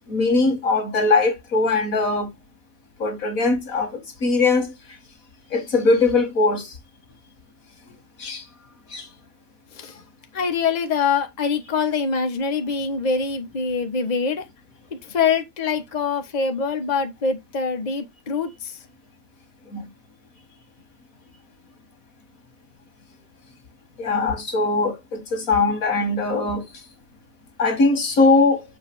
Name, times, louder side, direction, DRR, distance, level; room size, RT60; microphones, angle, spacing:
voice 1, 0.1-2.3 3.0-4.7 5.5-6.7 8.2-8.4 8.9-9.1 19.7-19.9 24.0-26.6 27.6-28.6, left 3 dB, 85° left, 2.2 m, -20 dB
voice 2, 10.3-14.4 15.0-18.8, left 5 dB, 30° left, 1.2 m, -24 dB
7.0 x 3.3 x 6.0 m
omnidirectional pair, 1.4 m